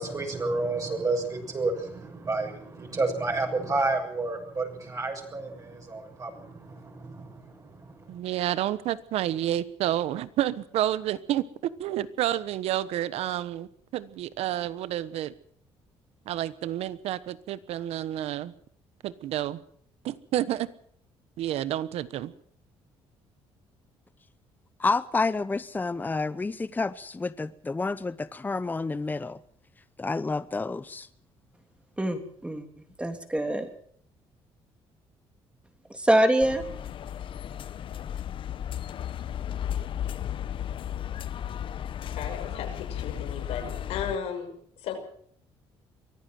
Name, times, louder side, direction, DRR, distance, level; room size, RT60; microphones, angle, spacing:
voice 1, 0.0-8.2, right 3 dB, 35° right, 6.7 m, -31 dB
voice 2, 8.1-11.4 11.8-15.3 16.3-18.5 19.0-19.6 20.0-20.7 21.4-22.3, right 12 dB, 80° right, 1.2 m, -29 dB
voice 3, 24.8-29.4 30.0-31.1, left 3 dB, 15° left, 0.8 m, -29 dB
voice 4, 32.0-32.7 33.0-33.7 35.9-36.6, right 1 dB, 10° right, 3.2 m, -24 dB
sound 1, 36.4-44.2, left 10 dB, 55° left, 0.9 m, -34 dB
voice 5, 42.1-44.5 44.8-45.0, left 7 dB, 80° left, 5.9 m, -35 dB
23.5 x 15.0 x 7.7 m
cardioid pair, 100°, 10 cm